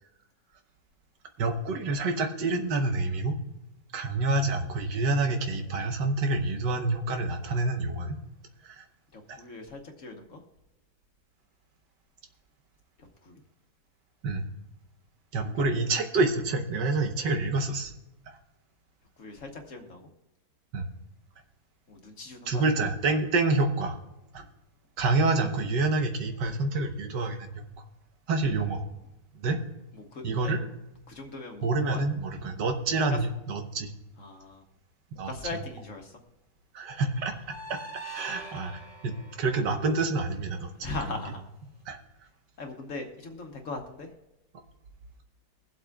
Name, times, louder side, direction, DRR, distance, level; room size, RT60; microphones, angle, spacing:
voice 1, 1.4-3.4 3.9-8.1 8.6-8.8 14.2-14.4 15.3-17.9 20.7-20.9 22.5-23.9 24.3-24.4 25.0-27.6 28.3-28.8 29.4-29.6 30.2-30.6 31.6-33.9 35.2-35.3 36.7-37.3 37.7-37.8 38.1-40.9 41.9-42.0, right 3 dB, 80° right, 5 dB, 1.7 m, -27 dB
voice 2, 9.1-10.4 13.2-13.4 15.3-15.5 19.2-20.1 21.9-22.6 29.9-30.6 31.1-32.0 33.1-33.2 34.2-34.6 35.2-36.2 40.8-41.5 42.6-44.1, left 3 dB, 50° left, 3 dB, 1.3 m, -39 dB
sound 1, 37.1-40.3, right 2 dB, 10° right, 1.0 m, -43 dB
22.5 x 7.8 x 2.3 m, 0.95 s
omnidirectional pair, 1.9 m